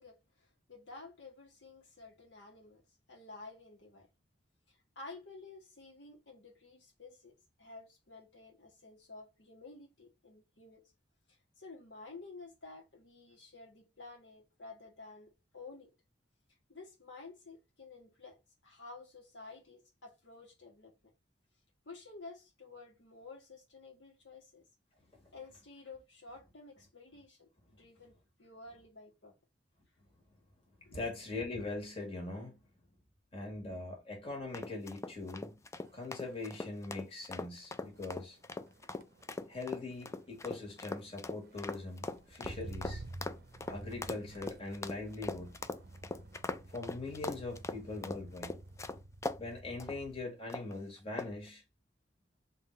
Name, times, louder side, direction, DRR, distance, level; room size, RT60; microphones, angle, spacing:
voice 1, 0.0-2.8 3.1-4.1 4.7-10.8 11.3-15.9 16.7-21.1 21.8-24.6 25.3-29.3 30.8-31.0, left 3 dB, 75° left, 1.3 m, -52 dB
voice 2, 30.9-32.6 33.3-35.6 35.9-38.4 39.5-43.0 43.7-45.5 46.7-48.5 49.4-51.6, left 3 dB, 35° left, 1.6 m, -41 dB
sound 1, 34.5-49.4 49.8-50.0 50.5-50.8 51.2-51.5, left 2 dB, 15° left, 0.3 m, -41 dB
Motor vehicle (road), 35.2-35.5 35.9-50.3 50.7-51.1, right 2 dB, 55° right, 0.6 m, -51 dB
3.8 x 2.7 x 4.4 m
head